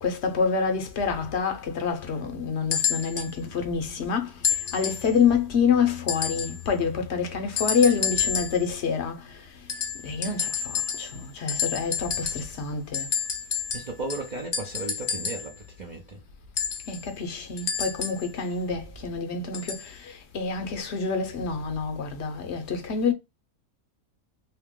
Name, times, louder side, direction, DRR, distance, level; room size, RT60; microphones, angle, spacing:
voice 1, 0.0-9.4 10.0-13.1 16.9-23.1, left 6 dB, 60° left, 0.9 m, -27 dB
sound 1, 2.7-3.3 4.4-5.1 6.1-6.6 7.6-8.7 9.7-11.2 11.5-12.6 12.9-15.5 16.6-18.3 19.5-19.9 20.8-20.9, left 7 dB, 80° left, 0.3 m, -29 dB
voice 2, 13.7-16.2, right 2 dB, 45° right, 0.6 m, -35 dB
2.8 x 2.8 x 3.6 m
omnidirectional pair, 1.5 m